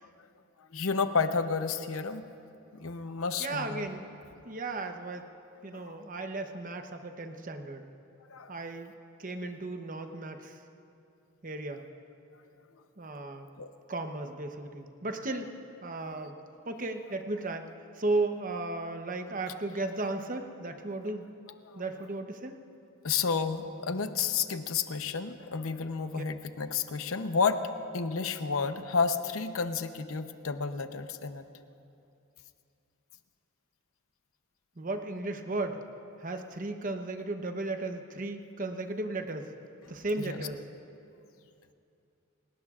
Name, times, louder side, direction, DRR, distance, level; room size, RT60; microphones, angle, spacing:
voice 1, 0.7-2.2 2.7-3.9 5.7-6.0 8.3-8.5 13.6-13.7 21.7-21.8 23.0-27.6 27.9-31.4 40.2-40.5, left 5 dB, 80° left, 9 dB, 0.8 m, -31 dB
voice 2, 3.4-4.1 4.4-5.2 5.6-7.9 8.5-8.9 9.2-10.6 11.4-11.8 13.0-13.5 13.9-15.5 15.8-16.3 16.7-17.7 18.0-21.3 21.8-22.6 26.0-26.2 34.8-35.8 36.2-39.5 39.9-40.6, right 2 dB, 40° right, 6 dB, 0.9 m, -35 dB
29.5 x 18.0 x 2.5 m, 2.7 s
head